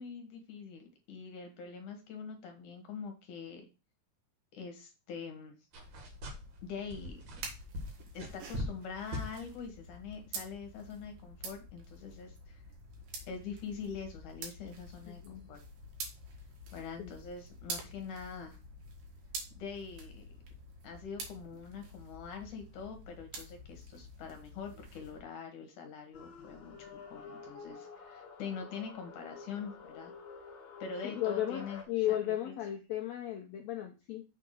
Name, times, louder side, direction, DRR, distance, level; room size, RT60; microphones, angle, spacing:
voice 1, 0.0-3.7 4.5-5.5 6.6-7.2 8.1-12.6 13.3-15.6 16.7-18.6 19.6-20.3 20.8-30.1 30.8-31.8 32.1-32.5, left 5 dB, 70° left, 5 dB, 2.4 m, -44 dB
sound 1, 5.7-6.6 6.9-8.9 9.1-9.3, left 1 dB, 55° right, 2.5 m, -40 dB
sound 2, 5.7-25.2, right 2 dB, 75° right, 3.2 m, -48 dB
voice 2, 15.1-15.5 17.0-17.2 31.0-34.2, left 12 dB, 90° left, 3 dB, 1.5 m, -35 dB
sound 3, 26.1-31.8, left 5 dB, 45° left, 1.8 m, -49 dB
6.7 x 3.5 x 6.1 m, 0.29 s
omnidirectional pair, 4.1 m